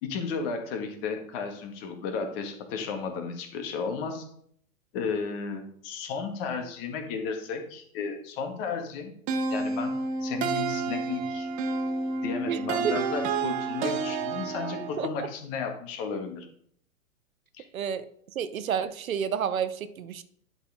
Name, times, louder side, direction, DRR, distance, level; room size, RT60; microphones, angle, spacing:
voice 1, 0.0-4.2 4.9-9.1 9.5-11.5 12.2-16.5 17.6-17.7, left 5 dB, 45° left, 4 dB, 1.6 m, -33 dB
Santur Phrase II, 9.3-15.1, right 4 dB, 20° right, 0.4 m, -30 dB
voice 2, 12.5-12.9 15.0-15.1 17.7-18.1 18.3-20.2, right 8 dB, 80° right, 13 dB, 0.8 m, -30 dB
11.0 x 4.2 x 3.5 m, 0.64 s
hypercardioid pair, 115°, 41 cm